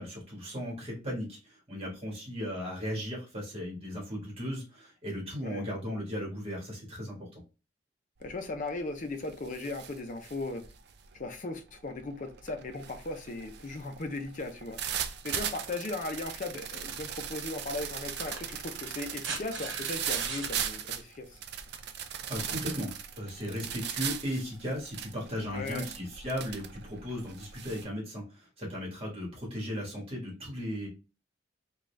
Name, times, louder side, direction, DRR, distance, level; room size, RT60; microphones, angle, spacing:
voice 1, 0.0-7.4 22.3-22.9 23.2-30.9, equal, 30° right, 1.6 m, -36 dB
voice 2, 8.2-10.6 11.1-15.0 15.2-21.4 25.5-25.9, left 2 dB, 45° left, 0.6 m, -37 dB
sound 1, 8.2-8.5 8.9-27.8, right 9 dB, 60° right, 0.4 m, -39 dB
sound 2, 18.1-20.6 22.1-22.2, right 4 dB, 75° right, 1.0 m, -40 dB
3.8 x 2.4 x 3.2 m
head